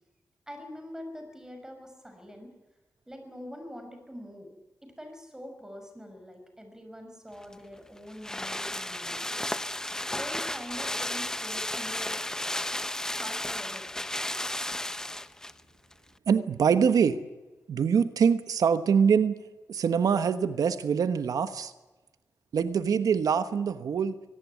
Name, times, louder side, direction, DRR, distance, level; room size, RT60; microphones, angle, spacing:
voice 1, 0.5-2.5 3.1-4.5 4.8-9.3 10.2-12.2 13.1-13.9, equal, 10° right, 5 dB, 6.0 m, -44 dB
sound 1, 7.4-15.6 15.9-16.0, left 1 dB, 10° left, 0.8 m, -33 dB
voice 2, 16.3-17.2 17.7-19.3 19.7-21.7 22.5-24.1, right 6 dB, 80° right, 11 dB, 1.2 m, -24 dB
24.0 x 18.5 x 9.5 m, 1.1 s
wide cardioid pair, 120°, 6 cm